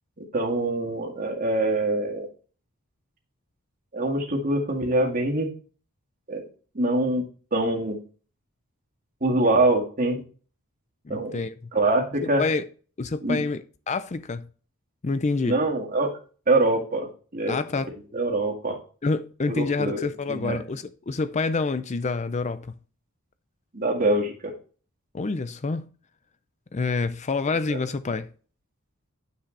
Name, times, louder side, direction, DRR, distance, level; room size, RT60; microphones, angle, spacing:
voice 1, 0.2-2.3 3.9-5.5 6.3-6.4 6.8-7.2 7.5-8.0 9.2-10.2 11.1-11.4 11.7-12.4 13.2-13.4 15.5-16.1 16.5-17.1 17.3-17.6 18.1-18.8 19.5-20.6 23.7-24.5 27.7-27.8, right 2 dB, 40° right, 2.0 m, -24 dB
voice 2, 11.0-11.5 12.2-12.7 13.0-14.5 15.0-15.6 17.5-17.9 19.0-22.7 25.1-25.9 26.7-28.3, left 3 dB, 30° left, 0.5 m, -27 dB
10.0 x 6.3 x 3.3 m
head